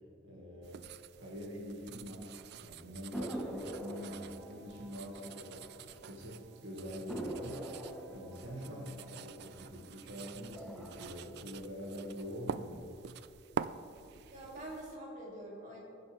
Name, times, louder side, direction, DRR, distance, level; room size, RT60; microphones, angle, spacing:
voice 1, 0.2-0.9 1.1-2.3 2.6-7.7 8.1-12.9, equal, 75° right, -3 dB, 2.0 m, -45 dB
sound 1, 0.6-15.0, right 7 dB, 55° right, 0.3 m, -47 dB
sound 2, 3.1-6.2 6.5-6.6 7.1-10.0 10.4-11.1, right 1 dB, ahead, 1.1 m, -44 dB
voice 2, 8.7-9.1 14.3-15.8, right 1 dB, 40° right, -4 dB, 2.8 m, -46 dB
20.5 x 7.7 x 3.4 m, 2.7 s
head